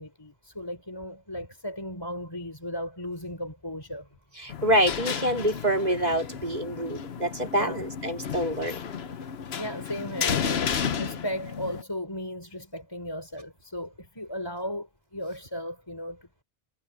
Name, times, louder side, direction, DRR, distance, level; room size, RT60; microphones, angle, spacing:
voice 1, 0.0-4.1 7.5-7.8 9.5-16.4, equal, 25° left, 5.5 m, -36 dB
voice 2, 4.3-8.9, equal, 40° right, 3.8 m, -26 dB
sound 1, 4.5-11.8, left 7 dB, 80° left, 1.2 m, -33 dB
omnidirectional pair, 1.0 m